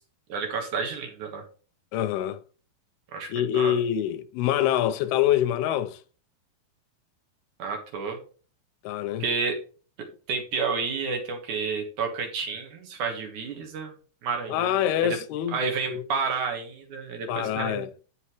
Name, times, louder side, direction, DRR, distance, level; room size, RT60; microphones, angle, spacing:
voice 1, 0.3-1.4 3.1-3.8 7.6-8.2 9.2-9.6 10.3-13.9 14.2-15.2 15.5-17.8, right 5 dB, 60° right, 2.7 m, -30 dB
voice 2, 1.9-2.4 3.3-6.0 8.8-9.2 14.5-15.6 15.9-16.0 17.3-17.9, left 11 dB, 90° left, 2.8 m, -25 dB
11.5 x 6.6 x 3.1 m
omnidirectional pair, 4.4 m